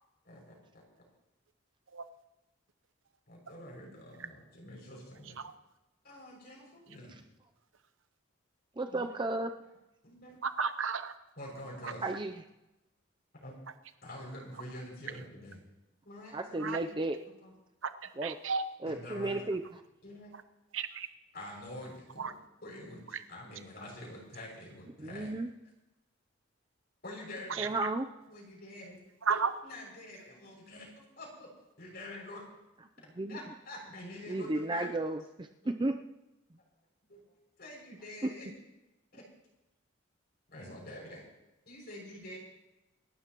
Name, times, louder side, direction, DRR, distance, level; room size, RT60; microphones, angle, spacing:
voice 1, 0.2-0.8 3.3-5.4 6.0-7.2 8.9-9.2 10.0-10.4 11.4-12.0 13.4-13.5 14.0-15.6 16.0-16.9 17.4-17.5 18.8-19.4 20.0-20.3 21.3-22.3 22.6-23.0 23.3-25.3 27.0-27.7 28.3-29.0 29.6-31.5 31.8-32.4 33.3-34.9 37.1-37.2 37.6-38.5 39.1-39.2 40.5-41.2 41.6-42.4, left 1 dB, 50° left, -2 dB, 6.6 m, -46 dB
voice 2, 8.8-9.6 12.0-12.3 16.3-17.2 18.2-18.3 18.8-19.6 25.0-25.5 27.6-28.1 33.2-33.4 34.3-36.0 38.2-38.3, right 2 dB, 25° right, 6 dB, 0.5 m, -33 dB
voice 3, 10.4-11.1 11.8-12.2 16.6-16.8 17.8-18.6 20.7-21.1 22.2-22.3 23.1-23.2 27.5-27.9 29.2-29.5, right 5 dB, 75° right, 10 dB, 0.9 m, -33 dB
28.0 x 12.5 x 3.1 m, 0.98 s
head